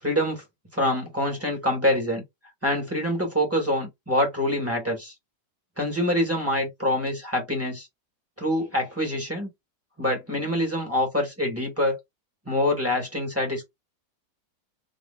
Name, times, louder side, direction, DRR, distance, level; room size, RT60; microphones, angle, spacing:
voice 1, 0.0-0.4 0.7-2.2 2.6-5.1 5.8-7.9 8.4-9.5 10.0-12.0 12.4-13.6, left 1 dB, 10° right, 1.7 m, -25 dB
4.0 x 3.2 x 2.3 m
omnidirectional pair, 1.9 m